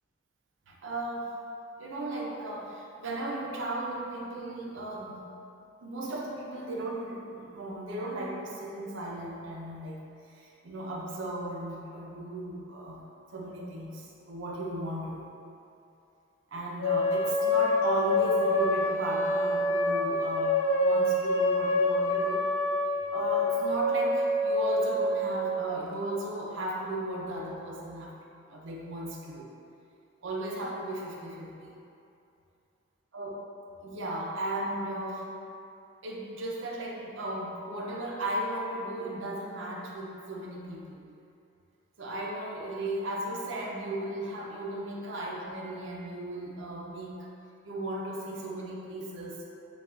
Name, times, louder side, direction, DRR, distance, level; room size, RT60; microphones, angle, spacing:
voice 1, 0.7-1.4 1.8-5.2 5.8-13.0 13.3-15.2 16.5-22.5 23.1-28.1 28.5-29.5 30.2-31.7 33.1-33.4 33.8-35.3 36.0-41.1 42.0-47.3 47.6-49.4, right 1 dB, 70° right, -2 dB, 0.6 m, -36 dB
sound 1, 16.8-25.8, left 1 dB, 85° left, 0.4 m, -27 dB
6.9 x 2.3 x 2.4 m, 2.7 s
head